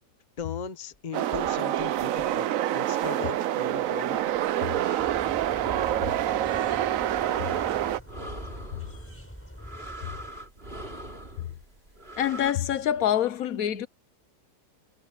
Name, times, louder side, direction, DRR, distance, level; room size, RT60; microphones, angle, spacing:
voice 1, 0.4-4.2, left 7 dB, 30° left, 1.0 m, -38 dB
sound 1, 1.1-8.0, right 12 dB, 65° right, 0.9 m, -27 dB
sound 2, 4.3-12.5, right 1 dB, 35° right, 3.7 m, -42 dB
sound 3, 5.0-10.3, equal, 5° left, 5.4 m, -45 dB
voice 2, 12.2-13.9, left 10 dB, 60° left, 1.3 m, -26 dB
omnidirectional pair, 1.8 m